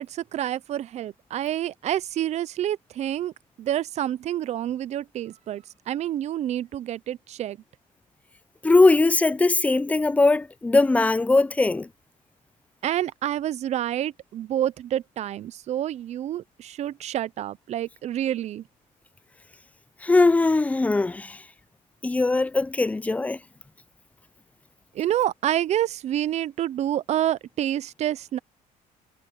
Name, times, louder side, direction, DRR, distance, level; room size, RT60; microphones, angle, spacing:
voice 1, 0.0-3.3 3.6-7.6 12.8-18.6 24.9-28.4, right 12 dB, 45° right, 0.5 m, -28 dB
voice 2, 8.6-11.9 20.0-21.4 22.0-23.4, left 3 dB, 10° left, 0.5 m, -20 dB
cardioid pair, 135°, 16 cm